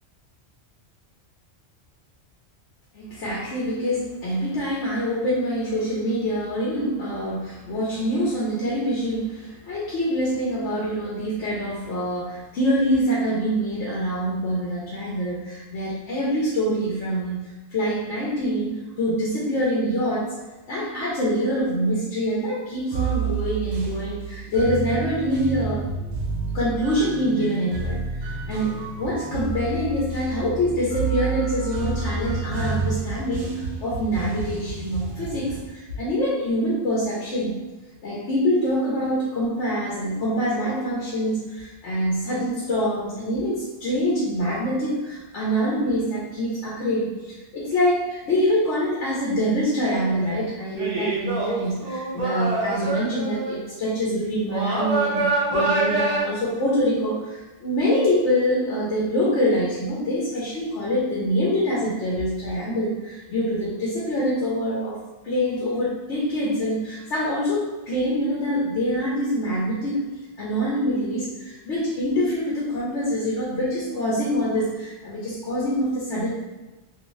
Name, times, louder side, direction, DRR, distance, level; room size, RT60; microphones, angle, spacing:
voice 1, 2.9-18.7 19.0-20.3 20.7-25.8 26.5-37.6 38.0-65.0 65.2-70.0 70.4-76.3, equal, 90° left, -7 dB, 1.1 m, -25 dB
sound 1, 22.9-35.7, right 4 dB, 70° right, 0.9 m, -30 dB
sound 2, 49.9-50.3 50.7-53.5 54.5-56.2, right 3 dB, 40° right, 0.7 m, -25 dB
3.1 x 2.7 x 2.6 m, 1.2 s
omnidirectional pair, 1.2 m